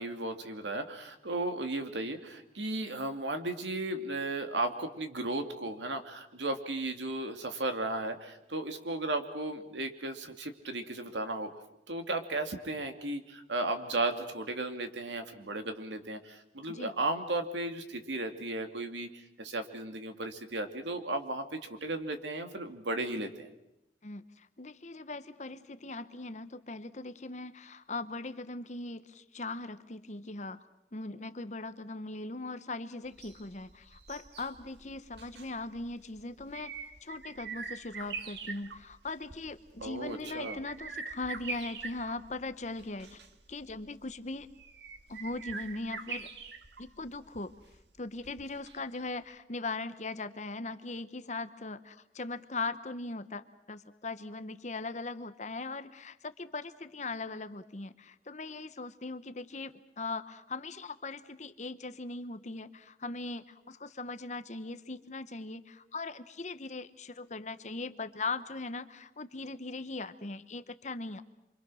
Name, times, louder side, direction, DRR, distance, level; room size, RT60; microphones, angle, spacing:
voice 1, 0.0-11.5 11.9-23.5 39.8-40.6, right 2 dB, 85° right, 6 dB, 2.6 m, -35 dB
voice 2, 24.0-30.6 30.9-36.7 37.0-43.2 43.5-44.5 45.1-46.3 46.8-47.5 48.0-71.2, left 3 dB, 40° left, 12 dB, 1.0 m, -40 dB
sound 1, 33.1-49.0 49.3-49.4, right 4 dB, 70° right, 1.8 m, -45 dB
28.5 x 25.0 x 6.4 m, 0.83 s
head